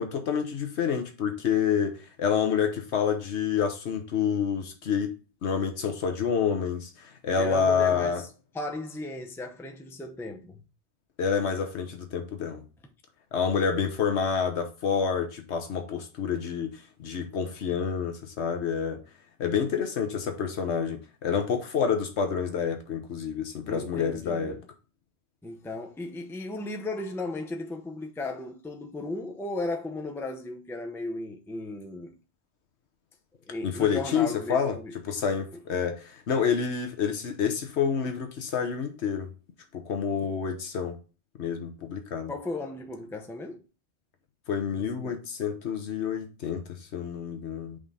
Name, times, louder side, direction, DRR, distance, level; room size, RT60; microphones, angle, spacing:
voice 1, 0.0-5.2 5.4-8.2 11.2-12.6 13.3-19.0 19.4-24.6 33.6-34.7 35.0-39.3 39.7-41.0 41.4-42.3 44.5-47.8, left 6 dB, 75° left, 1.2 m, -28 dB
voice 2, 7.3-8.3 8.5-10.6 23.6-24.7 25.4-32.1 33.4-34.9 42.3-43.6 44.8-45.2, left 2 dB, 5° left, 0.6 m, -36 dB
5.1 x 3.7 x 5.5 m
omnidirectional pair, 1.1 m